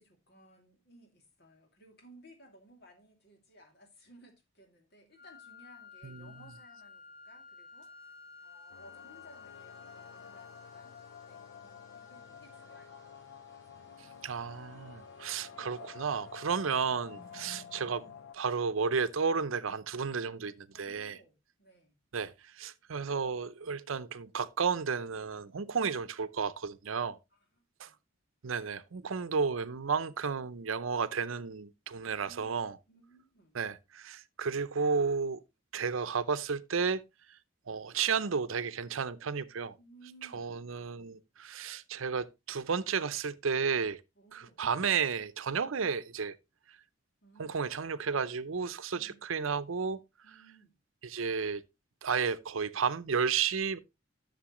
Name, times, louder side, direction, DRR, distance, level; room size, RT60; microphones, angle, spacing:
voice 1, 0.0-7.9 8.4-13.8 17.4-18.2 20.7-22.0 27.3-28.0 32.1-33.5 39.8-40.5 44.2-44.7 47.2-47.6 48.9-49.2 50.2-50.7, right 1 dB, 55° left, 2.6 m, -59 dB
sound 1, 5.2-13.2, left 5 dB, 15° right, 3.1 m, -54 dB
sound 2, 8.5-19.2, left 2 dB, 15° left, 4.1 m, -63 dB
sound 3, 8.7-18.3, left 7 dB, 70° left, 0.4 m, -50 dB
voice 2, 14.2-18.0 18.4-21.2 22.1-27.2 27.8-27.9 28.4-32.8 33.5-35.4 35.7-37.0 37.7-39.8 40.3-44.0 44.3-46.4 47.4-50.0 51.0-51.6 52.0-53.8, right 5 dB, 85° right, 0.6 m, -32 dB
11.5 x 6.7 x 3.0 m
head